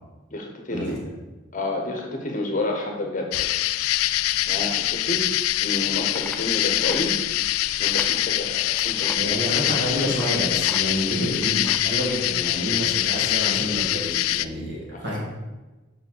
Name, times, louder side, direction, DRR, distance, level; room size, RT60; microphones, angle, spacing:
voice 1, 0.3-1.0 1.5-3.5 4.5-5.2 5.6-7.1 7.8-9.1 14.9-15.2, left 2 dB, 35° left, 2 dB, 1.0 m, -30 dB
sound 1, 3.3-14.5, left 15 dB, 85° left, 0.3 m, -24 dB
sound 2, 5.7-6.4 6.8-7.1 7.8-8.2 8.6-9.2 10.1-10.3 10.6-10.8 11.1-11.8 12.4-12.6 13.0-13.1, left 2 dB, 5° left, 0.5 m, -38 dB
voice 2, 9.2-15.2, equal, 55° right, -4 dB, 2.6 m, -28 dB
5.8 x 5.4 x 6.3 m, 1.2 s
head